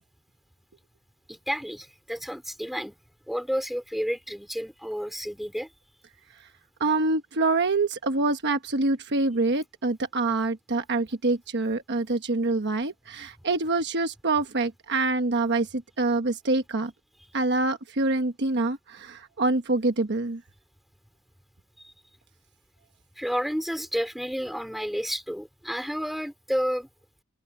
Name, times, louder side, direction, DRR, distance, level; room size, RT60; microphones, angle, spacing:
voice 1, 1.3-2.9 3.3-5.7 21.8-21.9 23.2-26.9, equal, ahead, 4.9 m, -31 dB
voice 2, 6.8-16.9 17.3-20.4, right 3 dB, 50° right, 1.2 m, -26 dB
head